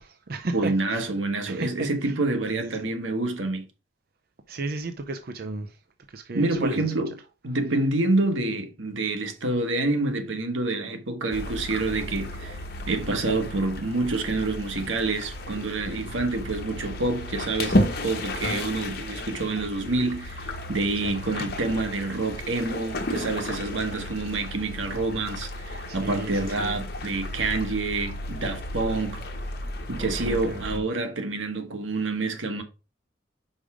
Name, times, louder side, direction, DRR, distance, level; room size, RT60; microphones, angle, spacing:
voice 1, 0.0-1.1 1.4-2.2 2.5-2.9 4.5-5.8 6.1-6.9 21.0-21.1 25.9-26.8 30.0-30.8, right 2 dB, 50° right, 0.6 m, -35 dB
voice 2, 0.5-3.6 6.3-7.1 7.4-12.6 12.9-29.2 29.9-32.6, right 2 dB, 85° right, 1.4 m, -27 dB
sound 1, 11.3-30.8, left 1 dB, 50° left, 1.3 m, -33 dB
5.3 x 4.8 x 5.0 m
head